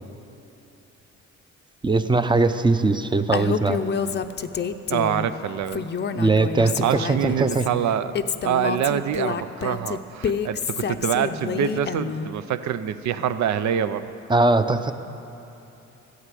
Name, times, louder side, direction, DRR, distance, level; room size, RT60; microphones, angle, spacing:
voice 1, 1.8-3.8 6.1-7.6 14.3-14.9, right 3 dB, 15° right, 10 dB, 0.7 m, -20 dB
Female speech woman speaking, 3.3-5.3 5.7-7.7 8.1-12.3, left 6 dB, 35° left, 0.6 m, -28 dB
voice 2, 4.9-5.8 6.6-8.1 8.4-14.0, right 9 dB, 65° right, 12 dB, 0.7 m, -25 dB
14.5 x 9.7 x 7.6 m, 3.0 s
cardioid pair, 90°, 30 cm